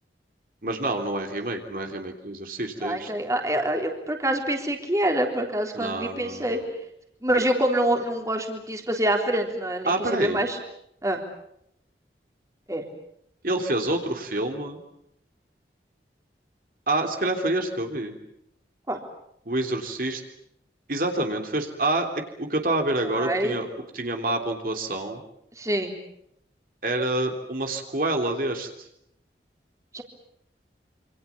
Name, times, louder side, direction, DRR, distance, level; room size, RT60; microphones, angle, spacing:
voice 1, 0.6-3.1 5.7-6.6 9.8-10.5 13.4-14.8 16.9-18.1 19.4-20.2 20.9-22.1 22.4-23.7 23.9-25.2 26.8-28.7, right 2 dB, 50° right, 4 dB, 3.2 m, -27 dB
voice 2, 2.8-6.6 7.2-10.6 11.0-11.2 12.7-12.9 18.9-19.0 23.1-23.6 25.6-26.0 29.9-30.0, right 1 dB, 20° right, 3 dB, 3.6 m, -26 dB
27.5 x 26.5 x 7.2 m, 0.77 s
head